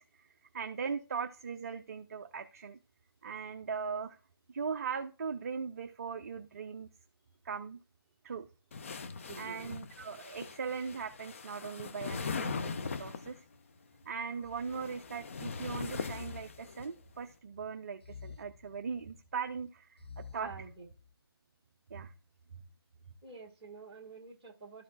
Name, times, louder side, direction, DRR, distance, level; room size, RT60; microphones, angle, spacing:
voice 1, 0.0-2.8 3.2-4.2 4.5-6.9 7.4-7.8 8.2-8.5 9.4-13.4 14.1-20.7 21.9-22.1, right 6 dB, 35° right, 6 dB, 0.5 m, -39 dB
sound 1, 8.7-13.4 14.4-16.9, left 5 dB, 30° left, 0.4 m, -40 dB
voice 2, 9.3-9.6 20.3-20.9 23.2-24.8, right 4 dB, 20° right, -2 dB, 1.4 m, -48 dB
sound 2, 14.4-15.4 16.0-17.3 18.0-19.3 20.0-21.1, left 6 dB, 80° left, 0.7 m, -51 dB
12.5 x 4.2 x 2.5 m, 0.34 s
figure-of-eight pair, 155°, 13 cm